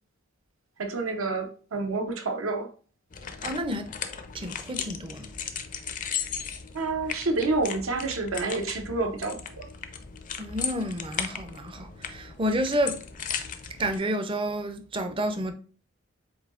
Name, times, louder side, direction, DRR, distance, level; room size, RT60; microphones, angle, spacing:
voice 1, 0.8-2.7 6.7-9.6, right 3 dB, 75° right, 0.7 m, -29 dB
sound 1, 3.1-14.0, left 7 dB, 40° left, 0.5 m, -36 dB
voice 2, 3.4-3.9 4.3-5.3 10.4-13.0 13.8-15.5, equal, 25° right, 0.5 m, -30 dB
7.7 x 2.7 x 2.4 m
head